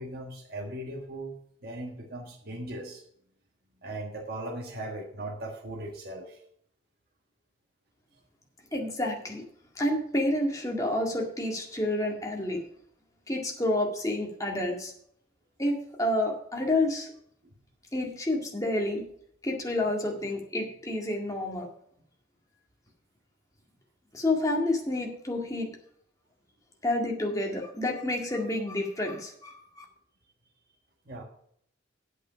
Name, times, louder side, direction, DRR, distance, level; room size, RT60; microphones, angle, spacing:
voice 1, 0.0-1.3 1.6-3.0 3.8-6.4 17.4-17.5 31.0-31.2, right 1 dB, 50° right, -1 dB, 1.5 m, -38 dB
voice 2, 8.7-9.4 9.8-12.6 13.3-14.9 15.6-17.1 17.9-19.0 19.4-21.7 24.1-25.7 26.8-29.9, left 1 dB, 15° left, 0 dB, 1.9 m, -29 dB
8.5 x 8.2 x 5.7 m, 0.68 s
head